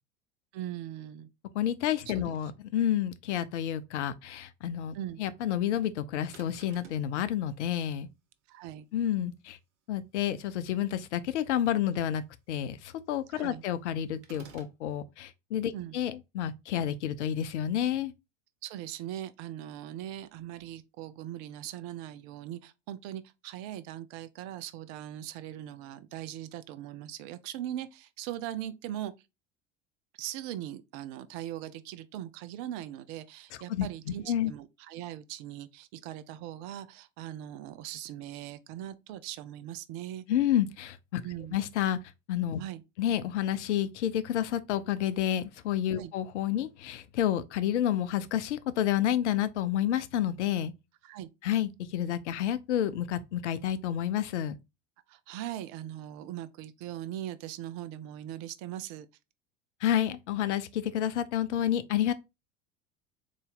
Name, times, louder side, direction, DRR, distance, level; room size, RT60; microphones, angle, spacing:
voice 1, 0.5-1.3 2.1-2.2 4.9-5.2 8.5-8.9 13.3-13.6 15.7-16.0 18.6-29.1 30.2-40.2 41.2-41.6 42.6-42.8 46.0-46.1 51.0-51.3 55.1-59.1, right 12 dB, 45° right, 0.6 m, -40 dB
voice 2, 1.5-8.1 8.9-9.6 9.9-18.1 33.7-33.9 34.3-34.5 40.3-41.2 41.5-42.0 42.3-42.6 43.0-50.7 51.4-54.6 59.8-62.1, left 11 dB, 70° left, 0.6 m, -30 dB
sound 1, 6.3-7.1 14.2-14.8, right 6 dB, 65° right, 1.0 m, -52 dB
4.0 x 3.1 x 3.8 m
figure-of-eight pair, 75°, 37 cm